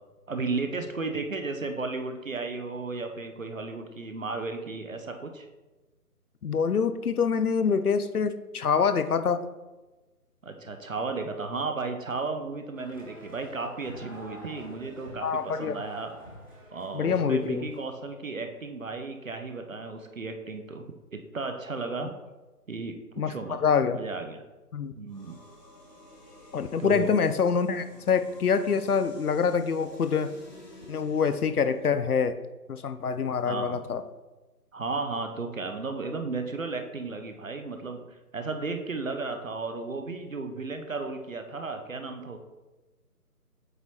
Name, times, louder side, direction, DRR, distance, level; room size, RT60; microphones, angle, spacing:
voice 1, 0.3-5.5 10.4-16.1 16.7-22.1 22.7-23.6 23.9-24.4 25.0-25.4 26.8-27.1 33.4-33.8 34.7-38.0 38.3-42.4, right 3 dB, 55° right, 6 dB, 0.7 m, -34 dB
voice 2, 6.4-9.4 15.2-15.8 16.9-17.7 23.2-24.0 24.7-24.9 26.5-30.4 30.9-32.4 32.7-34.0, left 6 dB, 70° left, 11 dB, 0.6 m, -26 dB
sound 1, 12.7-17.9, right 1 dB, 15° left, 0.8 m, -47 dB
sound 2, 25.1-32.0, left 1 dB, 90° left, 1.6 m, -51 dB
7.8 x 4.0 x 3.1 m, 1.1 s
figure-of-eight pair, 155°, 47 cm